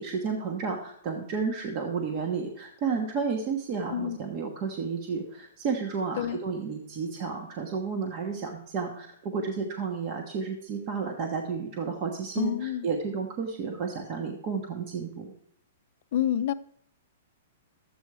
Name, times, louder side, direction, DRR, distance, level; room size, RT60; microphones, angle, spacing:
voice 1, 0.0-15.3, right 5 dB, 35° right, 1.2 m, -32 dB
voice 2, 12.4-12.9 16.1-16.5, left 11 dB, 55° left, 0.5 m, -28 dB
12.0 x 8.2 x 4.8 m
hypercardioid pair, 155°, 0 cm